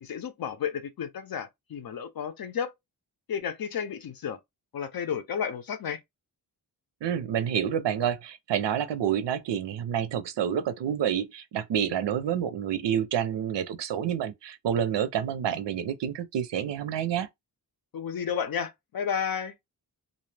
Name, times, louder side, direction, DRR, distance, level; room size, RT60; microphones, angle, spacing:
voice 1, 0.0-2.7 3.3-4.4 4.7-6.0 17.9-19.5, left 7 dB, 60° left, 0.6 m, -32 dB
voice 2, 7.0-17.3, right 9 dB, 90° right, 0.6 m, -28 dB
2.6 x 2.0 x 3.2 m
wide cardioid pair, 135°, 41 cm